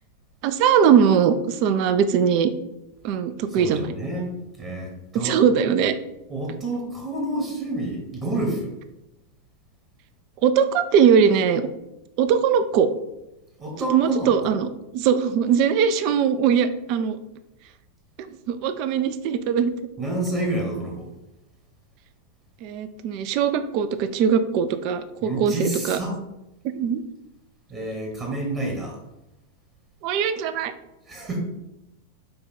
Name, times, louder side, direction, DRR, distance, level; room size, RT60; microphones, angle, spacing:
voice 1, 0.4-2.5 3.0-3.9 5.1-5.9 10.4-11.7 12.2-12.9 13.8-17.2 18.2-19.7 22.6-26.0 26.7-27.0 30.0-30.7, right 7 dB, 45° right, 11 dB, 0.3 m, -21 dB
voice 2, 3.5-5.4 6.3-8.7 13.6-14.3 20.0-21.1 25.2-26.2 27.7-29.0 31.1-31.4, right 1 dB, 25° right, 0 dB, 1.0 m, -29 dB
5.2 x 2.3 x 4.2 m, 0.92 s
figure-of-eight pair, 90°, 0 cm